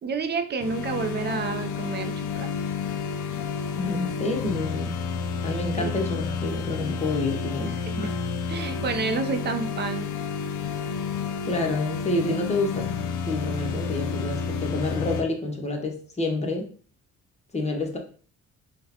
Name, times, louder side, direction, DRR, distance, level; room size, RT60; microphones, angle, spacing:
voice 1, 0.0-2.5 7.7-8.0 8.5-10.1, right 4 dB, 35° right, 8 dB, 0.4 m, -29 dB
sound 1, 0.6-15.2, left 6 dB, 80° left, 0.5 m, -30 dB
voice 2, 3.7-5.0 5.4-8.1 11.4-12.9 13.2-16.7 17.5-18.0, left 2 dB, 20° left, 2 dB, 0.8 m, -28 dB
3.7 x 2.2 x 2.8 m, 0.43 s
cardioid pair, 90°, 30 cm